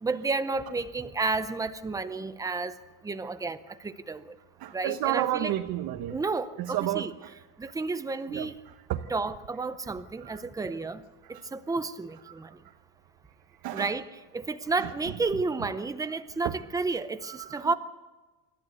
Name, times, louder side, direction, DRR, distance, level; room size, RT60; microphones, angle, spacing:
voice 1, 0.0-2.7 3.0-4.3 4.7-5.5 6.1-7.1 7.6-8.5 9.1-11.0 11.3-12.5 13.7-17.7, right 3 dB, 10° right, 11 dB, 0.6 m, -31 dB
voice 2, 4.6-6.2 6.6-7.0 8.3-8.5 8.9-9.0 13.6-13.9 16.4-16.5 17.3-17.7, right 13 dB, 50° right, 6 dB, 1.0 m, -30 dB
27.0 x 13.5 x 8.1 m, 1.2 s
cardioid pair, 170°, 47 cm